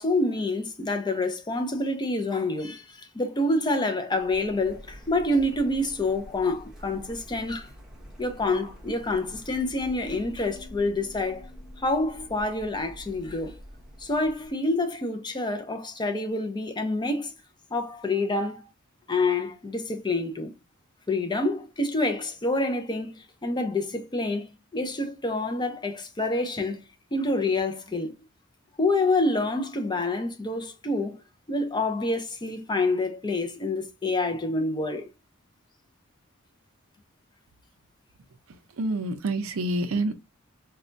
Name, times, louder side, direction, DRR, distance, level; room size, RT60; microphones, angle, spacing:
voice 1, 0.0-7.7 8.2-11.5 11.8-13.6 14.0-17.3 17.7-18.7 19.1-20.5 21.1-26.9 27.1-28.1 28.8-31.2 31.5-35.1, left 2 dB, 20° left, 0.5 m, -27 dB
Printer, 4.1-14.5, equal, 5° right, 0.8 m, -47 dB
sound 1, 9.6-14.8, left 4 dB, 65° left, 0.9 m, -51 dB
voice 2, 38.8-40.1, right 2 dB, 70° right, 0.5 m, -27 dB
4.1 x 2.2 x 2.5 m
head